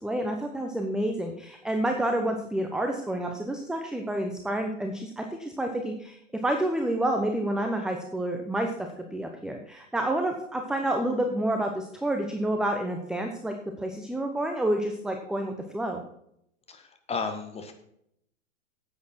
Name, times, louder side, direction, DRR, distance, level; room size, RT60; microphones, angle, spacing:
voice 1, 0.0-6.2 6.4-16.0, right 1 dB, ahead, 4 dB, 0.9 m, -29 dB
voice 2, 17.1-17.7, left 4 dB, 15° left, 6 dB, 1.7 m, -32 dB
10.5 x 8.6 x 4.5 m, 0.73 s
hypercardioid pair, 110°, 38 cm